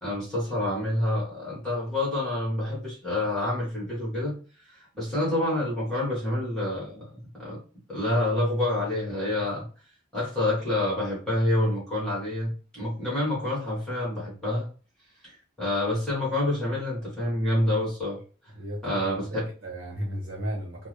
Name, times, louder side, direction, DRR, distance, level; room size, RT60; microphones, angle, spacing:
voice 1, 0.0-4.3 4.7-7.6 7.9-9.7 10.1-14.6 15.2-18.2 18.8-19.4, left 1 dB, 5° left, -8 dB, 1.3 m, -28 dB
voice 2, 18.5-20.9, equal, 55° right, -2 dB, 0.9 m, -35 dB
3.4 x 2.0 x 3.2 m, 0.38 s
head